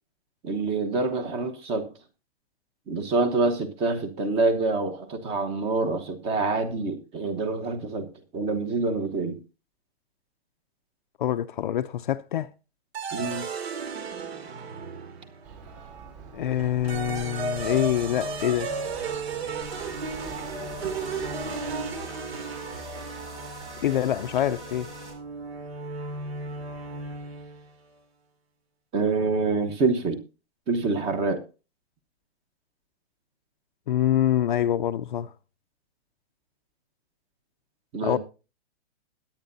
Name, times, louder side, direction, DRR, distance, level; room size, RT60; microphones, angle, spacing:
voice 1, 0.4-1.9 2.9-8.1 8.3-9.4 13.1-13.5 28.9-30.2 30.7-31.4 37.9-38.2, right 3 dB, 15° right, 1.2 m, -26 dB
voice 2, 11.2-12.5 16.3-18.7 23.8-24.9 33.9-35.3 38.0-38.2, left 11 dB, 45° left, 0.6 m, -25 dB
sound 1, 12.9-15.5 16.6-27.7, right 4 dB, 65° right, 2.7 m, -35 dB
Church bell, 15.4-21.8, right 6 dB, 35° right, 5.2 m, -45 dB
sound 2, 19.6-25.1, right 1 dB, 90° right, 7.9 m, -43 dB
21.0 x 8.8 x 2.7 m
hypercardioid pair, 160°, 34 cm